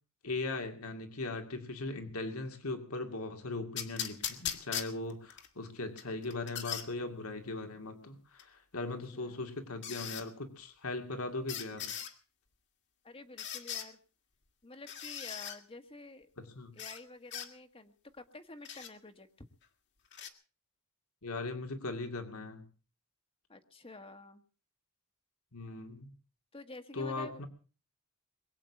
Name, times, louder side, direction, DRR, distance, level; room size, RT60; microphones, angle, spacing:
voice 1, 0.2-11.9 16.4-16.7 21.2-22.7 25.5-26.1 26.9-27.5, left 2 dB, 80° left, 6 dB, 2.5 m, -39 dB
sound 1, 3.8-5.5 6.0-6.9 8.4-8.5 9.8-10.2 11.5-12.1 13.4-13.9 14.9-15.6 16.8-17.0 17.3-17.5 18.6-18.9 20.1-20.3, left 9 dB, 55° left, 2.1 m, -39 dB
voice 2, 13.0-14.0 14.6-16.3 16.7-19.5 23.5-24.4 26.5-27.4, left 2 dB, 25° left, 7 dB, 1.5 m, -50 dB
22.5 x 8.5 x 7.2 m, 0.39 s
head